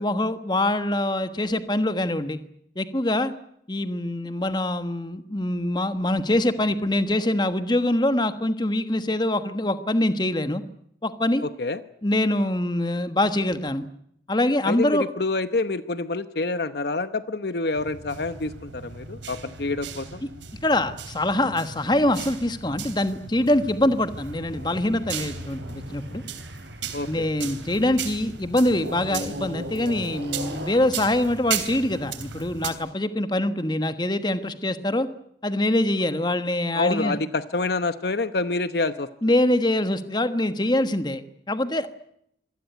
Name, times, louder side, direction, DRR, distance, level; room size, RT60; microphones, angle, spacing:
voice 1, 0.0-2.4 2.7-3.3 3.7-10.6 11.0-11.4 12.0-13.9 14.3-15.1 20.6-26.2 27.1-35.1 35.4-37.2 39.2-41.2 41.5-41.9, left 1 dB, 25° left, 10 dB, 1.3 m, -24 dB
voice 2, 11.4-11.8 14.7-20.2 26.9-27.3 36.7-39.1, left 3 dB, 55° left, 12 dB, 0.9 m, -27 dB
sound 1, 17.7-32.7, right 7 dB, 85° right, 3.3 m, -37 dB
sound 2, 23.4-28.0 28.8-32.4, equal, 65° right, 5.1 m, -40 dB
25.5 x 19.0 x 9.3 m, 0.74 s
head